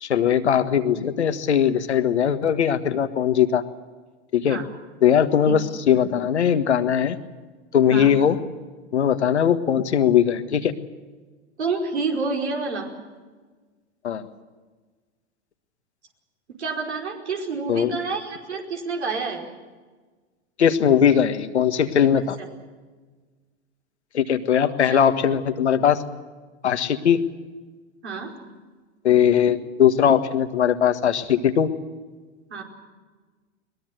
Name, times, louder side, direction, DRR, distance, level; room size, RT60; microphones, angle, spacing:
voice 1, 0.0-3.6 4.3-4.6 5.0-7.2 7.7-8.4 8.9-10.7 14.0-14.3 17.7-17.9 20.6-22.4 24.1-26.0 26.6-27.2 29.0-31.7, left 8 dB, 85° left, 9 dB, 1.6 m, -20 dB
voice 2, 11.6-12.9 16.6-19.4 24.6-25.1 28.0-28.3 32.5-32.6, right 4 dB, 85° right, 1 dB, 5.2 m, -28 dB
22.0 x 20.5 x 7.8 m, 1.4 s
hypercardioid pair, 95°, 33 cm